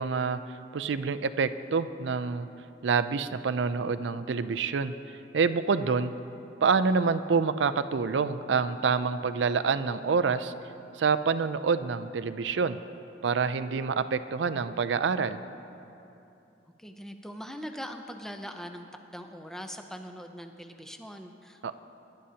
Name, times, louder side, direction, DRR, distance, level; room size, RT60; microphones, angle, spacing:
voice 1, 0.0-2.5 2.8-6.1 6.6-10.5 10.9-12.8 13.2-15.4 21.6-21.7, right 5 dB, 80° right, 12 dB, 0.5 m, -27 dB
voice 2, 16.8-21.7, equal, 5° left, 5 dB, 0.6 m, -41 dB
23.5 x 11.5 x 2.8 m, 2.8 s
head